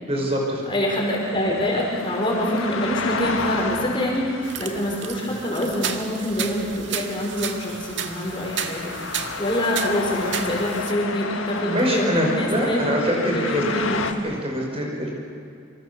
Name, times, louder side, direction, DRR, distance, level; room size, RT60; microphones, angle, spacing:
voice 1, 0.1-0.7 11.7-13.9 14.2-15.1, equal, 30° right, -1 dB, 5.2 m, -24 dB
voice 2, 0.7-9.0 9.4-14.0, equal, 25° left, -2 dB, 5.1 m, -25 dB
sound 1, 1.0-14.1, left 4 dB, 85° left, 1.9 m, -32 dB
sound 2, 4.4-10.9, right 7 dB, 65° right, 1.8 m, -33 dB
27.0 x 26.5 x 6.9 m, 2.4 s
head